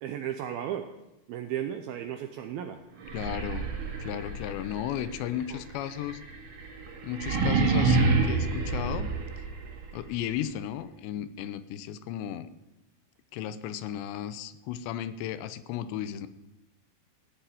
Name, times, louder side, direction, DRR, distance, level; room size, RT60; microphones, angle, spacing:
voice 1, 0.0-0.9 1.3-2.8 5.5-5.6, right 10 dB, 80° right, 6 dB, 2.2 m, -34 dB
sound 1, 3.0-9.9, right 4 dB, 55° right, 2.9 m, -28 dB
voice 2, 3.1-3.7 4.0-6.2 7.0-9.1 9.9-12.5 13.3-16.3, left 11 dB, 80° left, 13 dB, 2.9 m, -34 dB
16.0 x 7.0 x 9.3 m, 0.95 s
omnidirectional pair, 5.1 m